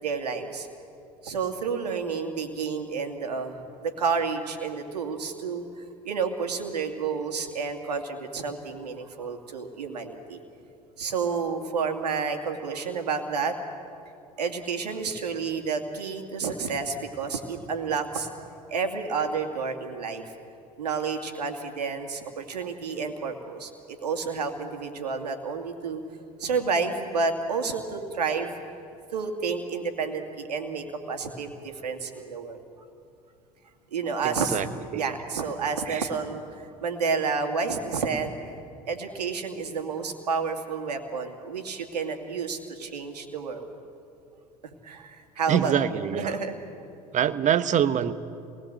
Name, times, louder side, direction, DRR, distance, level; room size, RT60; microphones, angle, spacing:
voice 1, 0.0-0.7 1.2-10.4 11.0-13.8 14.4-18.3 18.7-20.2 20.8-26.0 26.4-28.5 29.1-32.6 33.9-34.6 34.9-38.3 38.9-43.7 44.8-46.5, right 5 dB, 85° right, 4 dB, 2.4 m, -30 dB
voice 2, 34.2-34.7 34.9-35.1 35.9-36.0 45.5-46.4 47.1-48.1, right 9 dB, 35° right, 12 dB, 1.2 m, -25 dB
27.5 x 20.0 x 7.8 m, 2.6 s
hypercardioid pair, 75°, 20 cm